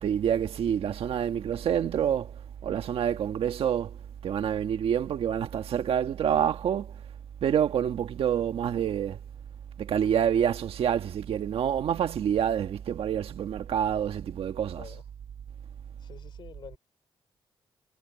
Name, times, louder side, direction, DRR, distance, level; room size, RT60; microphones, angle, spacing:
voice 1, 0.0-2.3 2.6-4.0 4.2-6.9 7.4-9.2 9.8-14.9, right 9 dB, 75° right, 1.6 m, -27 dB
voice 2, 16.0-16.8, left 7 dB, 55° left, 3.4 m, -47 dB
wide cardioid pair, 160°, 10 cm